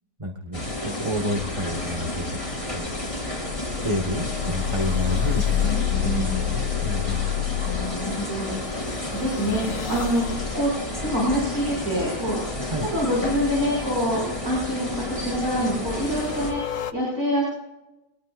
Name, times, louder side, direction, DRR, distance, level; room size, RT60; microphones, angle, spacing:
voice 1, 0.2-2.2 2.7-2.9 3.7-5.7 6.2-7.3 12.7-12.9, equal, 20° right, 2 dB, 1.6 m, -30 dB
sound 1, 0.5-16.5, left 1 dB, 20° left, 4.8 m, -31 dB
sound 2, 1.4-11.8 12.2-12.3 12.8-13.1 14.3-14.6 15.0-15.6 15.9-16.9, left 12 dB, 60° left, 1.1 m, -30 dB
voice 2, 5.3-6.5 7.6-10.7 11.0-12.4 12.9-17.5, equal, 70° right, -5 dB, 6.8 m, -26 dB
24.5 x 19.5 x 2.6 m, 0.96 s
omnidirectional pair, 1.6 m